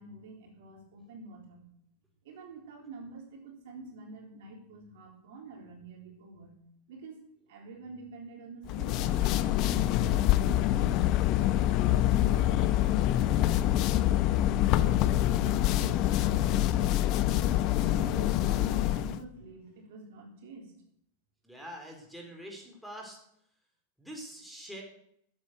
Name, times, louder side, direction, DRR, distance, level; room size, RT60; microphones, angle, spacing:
voice 1, 0.0-1.7 2.2-9.3 9.6-16.3 17.7-20.7, right 3 dB, 55° right, 2 dB, 3.7 m, -48 dB
sound 1, 8.7-19.2, left 13 dB, 40° left, 0.9 m, -26 dB
voice 2, 21.4-23.2 24.0-24.8, equal, ahead, 0 dB, 4.1 m, -44 dB
15.0 x 9.0 x 6.5 m, 0.70 s
figure-of-eight pair, 90°, 0 cm